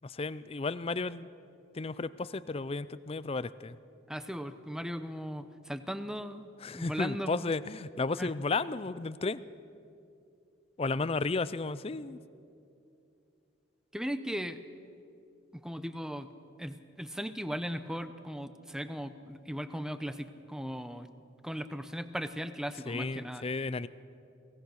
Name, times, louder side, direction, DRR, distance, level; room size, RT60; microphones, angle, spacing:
voice 1, 0.0-1.3 1.7-3.8 6.6-9.4 10.8-12.2 22.9-23.9, left 3 dB, 30° left, 16 dB, 0.4 m, -33 dB
voice 2, 4.1-7.5 8.2-8.3 13.9-14.6 15.6-16.3 16.6-21.1 21.4-23.5, equal, 5° right, 11 dB, 0.7 m, -38 dB
22.5 x 18.5 x 6.4 m, 2.6 s
head